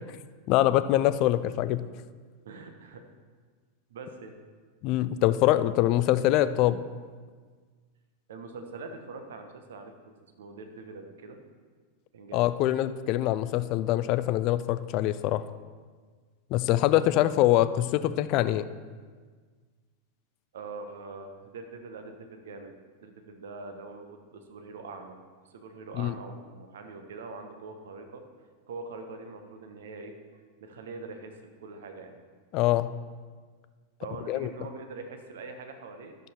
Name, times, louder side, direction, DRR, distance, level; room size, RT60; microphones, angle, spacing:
voice 1, 0.5-1.8 4.8-6.8 12.3-15.4 16.5-18.7 26.0-26.1 32.5-32.9 34.3-34.5, left 14 dB, 40° left, 13 dB, 0.4 m, -24 dB
voice 2, 2.4-3.0 3.9-4.4 8.3-9.9 10.2-11.4 12.1-12.5 20.5-22.7 23.0-25.2 25.5-28.2 28.7-32.2 34.0-36.2, right 3 dB, 60° right, 6 dB, 1.0 m, -43 dB
11.0 x 6.7 x 4.4 m, 1.5 s
figure-of-eight pair, 90°, 0 cm